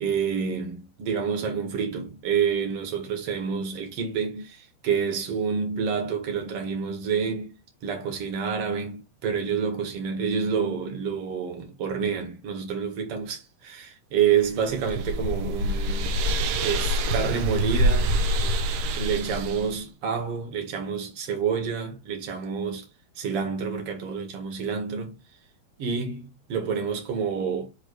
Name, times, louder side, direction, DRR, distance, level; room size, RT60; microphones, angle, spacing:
voice 1, 0.0-7.6 7.8-16.2 16.6-18.1 19.0-22.9 23.2-25.2 25.8-27.7, right 6 dB, 50° right, 2.1 m, -28 dB
sound 1, 14.4-19.7, right 1 dB, 75° right, 2.8 m, -25 dB
7.9 x 3.1 x 4.6 m
omnidirectional pair, 4.8 m